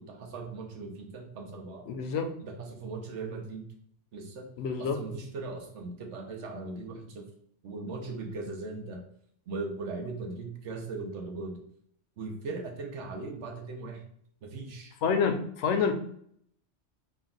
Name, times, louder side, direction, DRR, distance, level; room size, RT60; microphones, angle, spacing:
voice 1, 0.0-1.9 2.4-3.7 4.1-4.5 4.8-7.2 7.6-9.0 9.5-11.6 12.2-14.0 14.4-14.9, right 3 dB, 80° right, 2 dB, 1.1 m, -39 dB
voice 2, 1.9-2.3 4.6-5.0 15.0-15.9, left 6 dB, 80° left, 6 dB, 0.9 m, -27 dB
3.8 x 2.3 x 3.8 m, 0.67 s
omnidirectional pair, 1.2 m